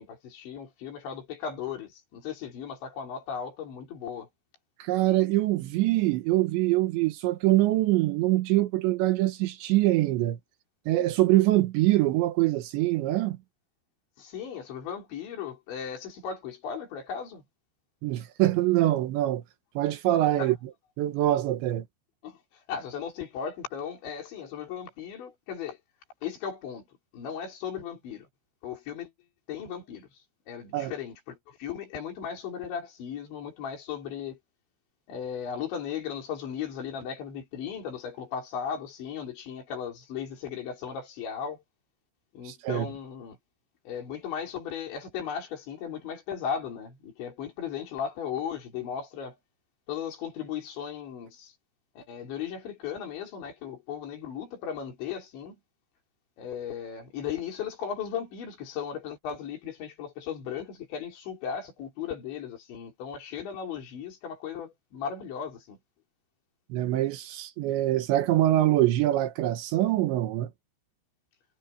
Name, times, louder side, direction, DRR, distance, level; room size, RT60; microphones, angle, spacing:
voice 1, 0.0-4.3 14.2-17.4 20.4-20.5 22.2-25.8 26.2-26.8 27.1-28.3 28.6-29.1 29.5-30.1 30.5-34.4 35.1-41.6 42.3-43.4 43.9-49.4 49.9-51.5 52.0-55.6 56.4-65.8, left 7 dB, 85° left, 6.9 m, -36 dB
voice 2, 4.8-10.4 10.9-13.4 18.0-19.4 19.8-20.6 21.0-21.9 30.7-30.9 42.5-42.9 66.7-70.5, right 15 dB, 80° right, 3.5 m, -24 dB
omnidirectional pair, 5.1 m